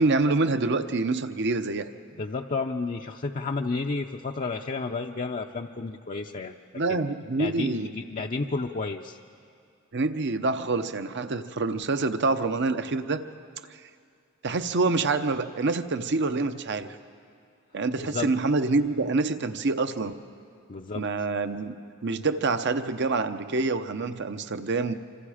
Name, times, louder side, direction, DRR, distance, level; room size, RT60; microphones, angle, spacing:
voice 1, 0.0-1.9 6.7-7.9 9.9-13.3 14.4-17.0 17.7-20.2 20.9-21.7 22.0-24.9, right 3 dB, 60° right, 10 dB, 0.9 m, -26 dB
voice 2, 2.2-6.5 6.9-9.2 18.0-18.3 20.7-21.0, left 3 dB, 40° left, 1 dB, 0.6 m, -32 dB
26.0 x 26.0 x 5.0 m, 2.4 s
head